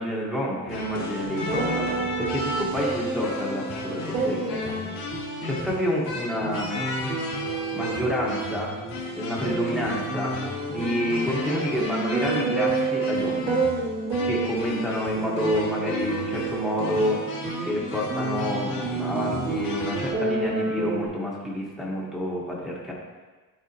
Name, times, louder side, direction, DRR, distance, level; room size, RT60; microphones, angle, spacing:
voice 1, 0.0-1.9 2.2-4.8 5.4-6.8 7.7-8.8 9.2-10.4 10.7-13.5 14.2-17.2 17.7-22.9, equal, ahead, -5 dB, 1.3 m, -28 dB
sound 1, 0.7-20.1, left 3 dB, 80° left, 1.9 m, -34 dB
sound 2, 1.2-21.1, right 4 dB, 70° right, 2.1 m, -30 dB
12.0 x 4.2 x 2.9 m, 1.3 s
cardioid pair, 165°, 34 cm